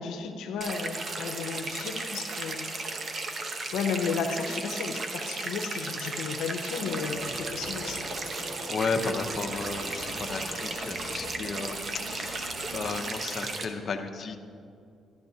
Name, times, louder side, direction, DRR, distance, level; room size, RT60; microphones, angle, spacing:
voice 1, 0.0-2.7 3.7-8.1, left 6 dB, 90° left, 4 dB, 0.6 m, -33 dB
sound 1, 0.6-13.7, right 3 dB, 45° right, 0.9 m, -35 dB
sound 2, 6.7-12.9, equal, 85° right, 2.7 m, -42 dB
voice 2, 8.7-14.4, left 4 dB, 50° left, 4 dB, 0.7 m, -34 dB
11.5 x 11.0 x 2.7 m, 2.4 s
cardioid pair, 90°, 0 cm